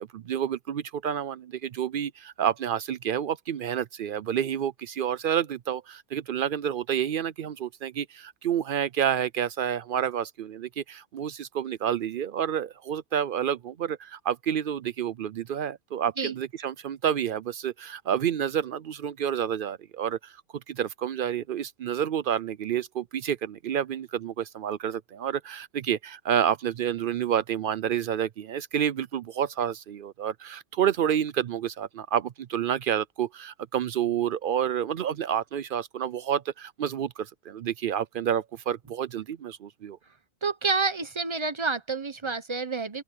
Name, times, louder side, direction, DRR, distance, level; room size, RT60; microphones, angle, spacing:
voice 1, 0.0-20.4 20.7-40.0, right 9 dB, 65° right, 0.5 m, -29 dB
voice 2, 40.4-43.0, right 4 dB, 25° right, 0.8 m, -28 dB
open air
omnidirectional pair, 1.4 m